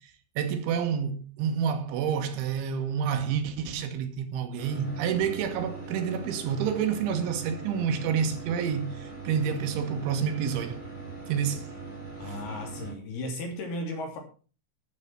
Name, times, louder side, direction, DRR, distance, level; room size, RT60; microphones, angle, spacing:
voice 1, 0.4-10.9 11.3-11.7 12.2-12.3, right 7 dB, 80° right, 3.8 m, -29 dB
sound 1, 4.6-12.9, right 3 dB, 10° left, 3.1 m, -41 dB
voice 2, 12.2-14.2, left 1 dB, 60° left, 4.8 m, -35 dB
12.5 x 8.0 x 5.9 m
omnidirectional pair, 5.4 m